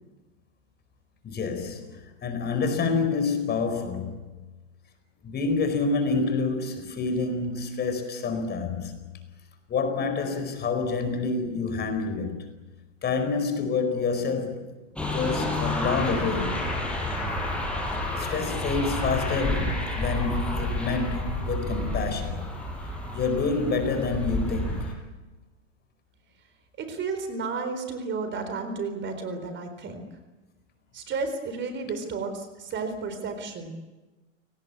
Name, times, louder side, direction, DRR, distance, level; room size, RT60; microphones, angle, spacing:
voice 1, 1.2-4.3 5.2-8.9 9.7-12.5 13.0-14.7 15.1-16.6 18.2-22.5 23.1-25.1, left 4 dB, 25° left, 4.8 m, -28 dB
sound 1, 15.0-24.9, left 1 dB, 5° left, 6.3 m, -30 dB
voice 2, 26.8-30.0 30.9-33.7, right 4 dB, 30° right, 4.1 m, -32 dB
28.5 x 19.0 x 8.6 m
hypercardioid pair, 110°, 37 cm